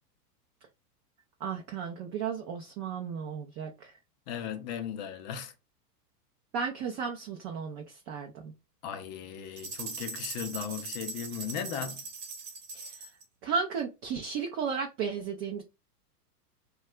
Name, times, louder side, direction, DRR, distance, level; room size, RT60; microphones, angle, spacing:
voice 1, 1.4-4.0 6.5-8.5 12.7-13.1 13.4-15.6, right 6 dB, 30° right, 0.5 m, -34 dB
voice 2, 4.3-5.5 8.8-12.1, left 8 dB, 30° left, 0.3 m, -37 dB
sound 1, 9.6-13.2, right 4 dB, 90° right, 1.0 m, -40 dB
2.7 x 2.3 x 3.2 m
hypercardioid pair, 120°, 48 cm